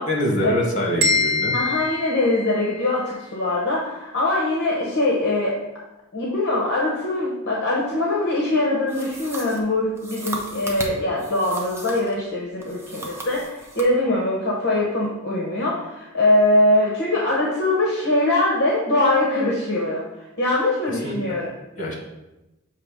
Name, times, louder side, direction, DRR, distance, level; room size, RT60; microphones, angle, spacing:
voice 1, 0.1-1.5 21.0-21.1 21.8-21.9, left 1 dB, 40° left, -2 dB, 1.5 m, -24 dB
sound 1, 1.0-3.0, left 2 dB, 50° right, 1.1 m, -24 dB
voice 2, 1.5-5.6 6.1-20.0 20.4-21.5, left 2 dB, 55° left, -3 dB, 0.9 m, -22 dB
sound 2, 8.9-12.2 12.6-13.9, right 1 dB, 10° right, 0.7 m, -36 dB
6.7 x 2.9 x 5.0 m, 0.98 s
head